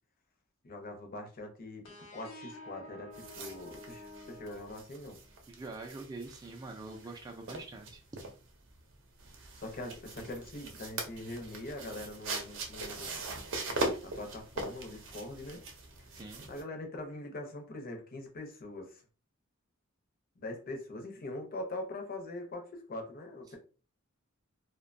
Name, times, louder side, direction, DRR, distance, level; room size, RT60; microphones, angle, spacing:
voice 1, 0.6-1.8 2.1-5.2 9.6-13.2 14.0-15.6 16.5-19.0 20.4-23.6, left 1 dB, 45° left, 4 dB, 0.6 m, -42 dB
sound 1, 1.8-5.4, left 2 dB, 80° left, 0.8 m, -50 dB
sound 2, 3.1-16.6, right 2 dB, 65° right, 0.6 m, -41 dB
voice 2, 5.5-8.0 16.1-16.5 23.5-23.6, right 3 dB, 20° right, 2 dB, 0.3 m, -44 dB
2.6 x 2.2 x 2.5 m, 0.35 s
head